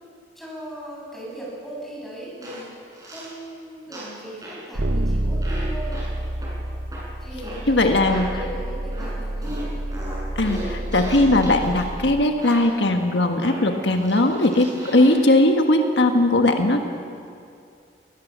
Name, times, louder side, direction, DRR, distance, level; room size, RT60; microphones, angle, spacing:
voice 1, 0.3-2.7 3.0-6.0 7.2-9.6, right 1 dB, ahead, -5 dB, 7.9 m, -38 dB
sound 1, 2.4-2.6 2.9-3.3 3.9-4.2 4.4-4.7 5.4-5.6 5.9-6.1 6.4-6.5 6.9-7.0 7.4-7.6 7.9-8.3 8.9-9.1 9.4-11.8 12.4-12.7 13.4-15.3, equal, 20° right, 6.9 m, -37 dB
sound 2, 4.7-12.3, right 1 dB, 60° right, 1.0 m, -28 dB
voice 2, 7.7-8.3 10.4-16.8, left 1 dB, 80° left, 4 dB, 1.5 m, -19 dB
21.0 x 20.5 x 7.4 m, 2.4 s
head